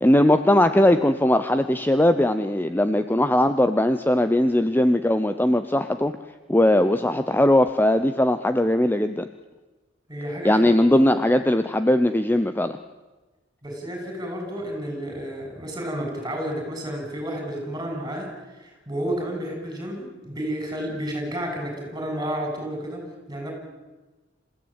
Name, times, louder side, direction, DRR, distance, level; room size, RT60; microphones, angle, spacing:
voice 1, 0.0-6.1 6.5-9.3 10.4-12.8, left 1 dB, 10° left, 10 dB, 0.7 m, -19 dB
voice 2, 10.1-11.2 13.6-23.5, right 1 dB, 20° right, 2 dB, 7.6 m, -31 dB
27.5 x 15.5 x 8.9 m, 1.2 s
head